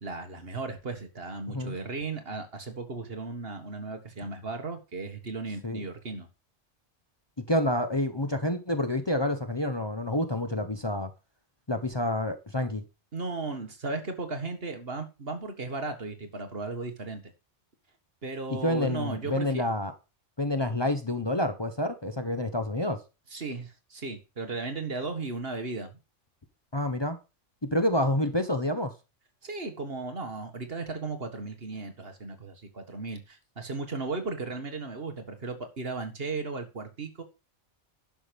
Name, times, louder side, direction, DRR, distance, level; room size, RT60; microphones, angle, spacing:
voice 1, 0.0-6.3 13.1-17.2 18.2-19.6 23.3-26.0 29.4-37.2, right 3 dB, 55° right, 1.9 m, -36 dB
voice 2, 7.4-11.1 11.7-12.8 18.5-19.9 20.4-23.0 26.7-27.2 27.7-28.9, left 1 dB, 25° left, 1.0 m, -28 dB
11.0 x 6.1 x 5.2 m
omnidirectional pair, 1.2 m